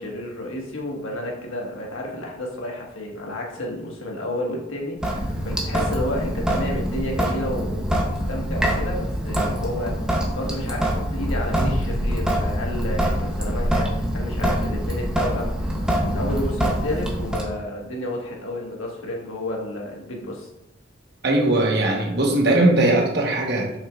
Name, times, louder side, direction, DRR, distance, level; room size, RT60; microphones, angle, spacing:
voice 1, 0.0-10.0 10.3-20.5, left 1 dB, 85° left, -1 dB, 1.5 m, -31 dB
Sink (filling or washing) / Drip, 5.0-17.4, equal, 5° right, 0.8 m, -24 dB
voice 2, 21.2-23.7, right 2 dB, 55° right, 0 dB, 1.2 m, -19 dB
7.6 x 5.6 x 2.4 m, 0.86 s
head